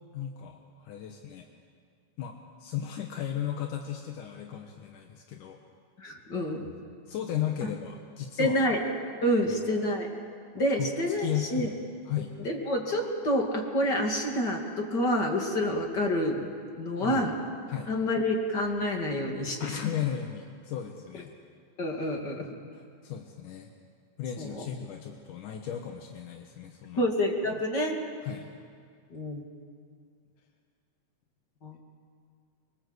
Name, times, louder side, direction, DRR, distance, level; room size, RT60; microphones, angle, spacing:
voice 1, 0.1-1.5 2.2-5.6 7.1-8.6 9.5-9.8 10.8-10.9 11.2-11.7 12.1-12.3 17.0-17.3 17.7-17.9 19.6-21.3 22.7-23.7 24.2-27.1 28.2-28.5, left 10 dB, 80° left, 3 dB, 2.8 m, -35 dB
voice 2, 6.0-6.7 8.4-8.8 9.2-10.1 10.5-11.7 12.4-16.4 16.8-17.4 17.9-19.8 21.8-22.5 24.4-24.6 27.0-28.0 29.1-29.4 31.6-31.8, left 1 dB, 35° left, 1 dB, 2.8 m, -28 dB
24.0 x 23.5 x 8.1 m, 2.2 s
omnidirectional pair, 3.6 m